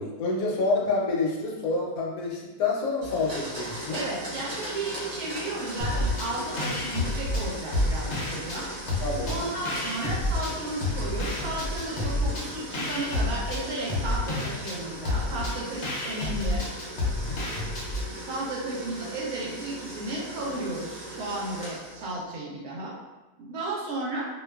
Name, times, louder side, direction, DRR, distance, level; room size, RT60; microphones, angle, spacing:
voice 1, 0.0-4.0 9.0-9.3 17.1-17.4, left 3 dB, 75° left, -2 dB, 1.0 m, -28 dB
Domestic sounds home sounds, 3.0-22.2, right 1 dB, 45° right, 0.7 m, -39 dB
voice 2, 3.9-8.7 9.3-16.7 18.2-22.9 23.4-24.3, right 2 dB, 70° right, -4 dB, 1.0 m, -34 dB
sound 1, 5.8-6.3 6.6-8.6 8.9-10.5 10.8-18.1, left 2 dB, 60° left, 0.7 m, -29 dB
2.6 x 2.2 x 2.2 m, 1.1 s
omnidirectional pair, 1.7 m